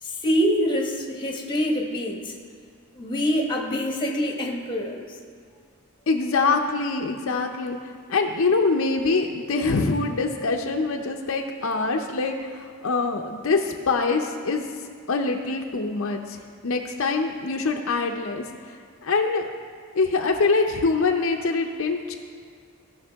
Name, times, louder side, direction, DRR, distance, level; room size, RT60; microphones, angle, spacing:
voice 1, 0.0-2.3 2.9-5.0, equal, 20° left, 1 dB, 1.1 m, -25 dB
voice 2, 6.1-7.8 8.1-14.6 15.1-16.4 16.6-18.4 19.0-19.4 19.9-22.2, left 4 dB, 65° left, 3 dB, 0.6 m, -24 dB
16.5 x 5.9 x 3.5 m, 2.1 s
head